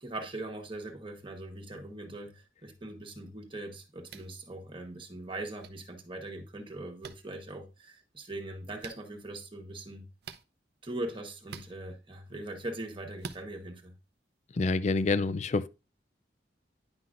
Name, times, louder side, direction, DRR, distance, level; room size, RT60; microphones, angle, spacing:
voice 1, 0.0-10.1 10.8-13.9, right 2 dB, 30° right, 1.3 m, -41 dB
sound 1, 4.1-4.3 5.6-5.7 7.0-7.2 8.8-9.0 10.2-10.4 11.5-11.7 13.2-13.4, right 5 dB, 65° right, 0.6 m, -43 dB
voice 2, 14.6-15.7, left 3 dB, 40° left, 0.4 m, -27 dB
9.8 x 5.7 x 2.5 m
head